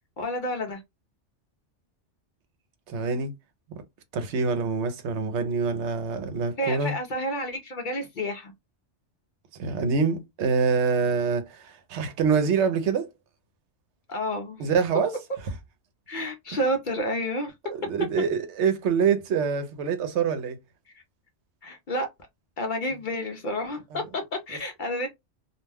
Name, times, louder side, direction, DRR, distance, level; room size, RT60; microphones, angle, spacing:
voice 1, 0.2-0.8 6.6-8.5 14.1-14.7 16.1-17.5 21.6-22.1 22.6-25.1, equal, 55° left, 0.6 m, -30 dB
voice 2, 2.9-3.3 4.1-7.0 9.6-13.1 14.6-15.1 17.7-20.6 23.9-24.0, right 5 dB, 75° right, 0.9 m, -25 dB
2.4 x 2.1 x 3.3 m
omnidirectional pair, 1.2 m